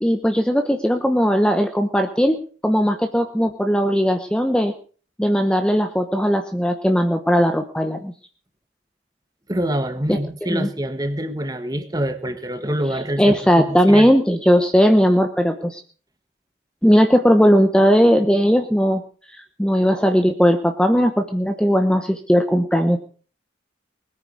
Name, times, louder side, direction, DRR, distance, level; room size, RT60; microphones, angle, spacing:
voice 1, 0.0-2.4 2.6-4.7 5.2-8.1 10.1-10.2 10.5-10.7 12.9-15.8 16.8-19.0 19.6-23.0, equal, 5° left, 6 dB, 1.0 m, -18 dB
voice 2, 9.5-14.1, right 1 dB, 20° right, 9 dB, 1.5 m, -26 dB
20.5 x 9.6 x 6.4 m, 0.42 s
head